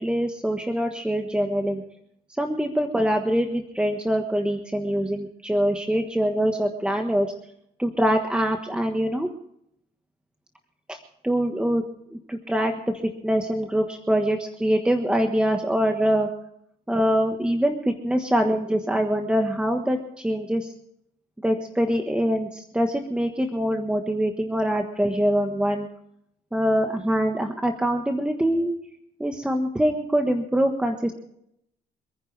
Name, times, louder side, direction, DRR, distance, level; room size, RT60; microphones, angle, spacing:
voice 1, 0.0-1.8 2.4-7.3 7.8-9.3 10.9-11.0 11.2-11.8 12.1-12.9 13.2-16.3 16.9-20.7 21.4-25.9 26.5-28.7 29.2-31.1, equal, 5° right, 4 dB, 1.4 m, -24 dB
27.0 x 10.0 x 3.4 m, 0.76 s
cardioid pair, 115°, 17 cm